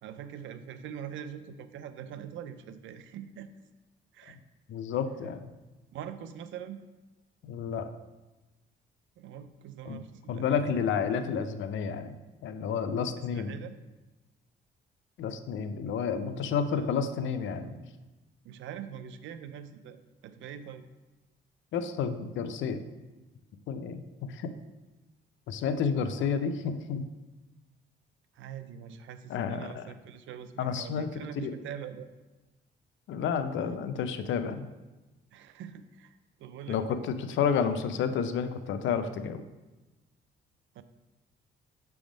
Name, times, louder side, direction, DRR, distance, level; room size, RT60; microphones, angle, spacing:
voice 1, 0.0-3.6 4.1-4.4 5.9-6.8 9.2-10.6 13.2-13.8 16.7-17.0 18.4-20.9 26.0-26.4 28.3-32.1 35.3-37.0 40.7-40.8, right 8 dB, 75° right, 11 dB, 0.5 m, -43 dB
voice 2, 4.7-5.5 7.4-7.9 9.9-10.0 10.3-13.6 15.2-17.8 21.7-22.8 23.7-24.5 25.5-27.1 29.3-29.8 30.6-31.5 33.1-34.7 36.7-39.4, left 6 dB, 75° left, 9 dB, 0.5 m, -31 dB
6.0 x 3.5 x 5.0 m, 1.1 s
cardioid pair, 90°, 20 cm